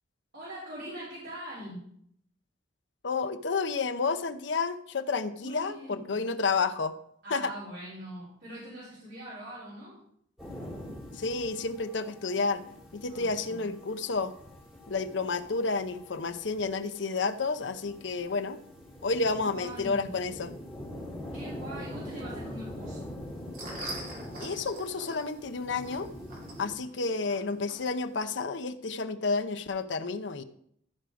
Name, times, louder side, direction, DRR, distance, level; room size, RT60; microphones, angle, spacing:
voice 1, 0.3-1.8 5.4-6.2 7.2-10.0 13.0-13.7 19.3-20.2 21.3-23.2 26.9-27.2, right 1 dB, 70° right, -11 dB, 4.9 m, -42 dB
voice 2, 3.0-6.9 7.3-7.5 11.1-12.6 12.9-14.3 14.9-18.6 19.0-20.5 24.4-26.1 26.6-30.4, left 4 dB, 70° left, 10 dB, 0.7 m, -30 dB
sound 1, 10.4-26.8, left 1 dB, ahead, 3.5 m, -44 dB
sound 2, 23.2-28.4, right 1 dB, 45° right, 3.0 m, -45 dB
14.0 x 5.0 x 5.0 m, 0.69 s
head